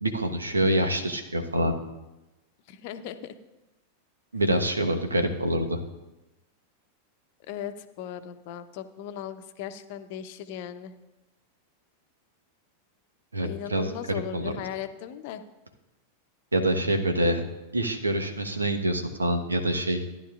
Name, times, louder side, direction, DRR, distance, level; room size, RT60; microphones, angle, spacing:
voice 1, 0.0-1.7 4.3-5.8 13.3-14.5 16.5-17.4 17.7-20.0, right 1 dB, 75° right, 5 dB, 1.1 m, -26 dB
voice 2, 2.7-3.3 7.5-10.9 13.4-15.4, left 9 dB, 50° left, 10 dB, 0.7 m, -37 dB
14.5 x 10.5 x 2.5 m, 1.0 s
figure-of-eight pair, 90°, 0 cm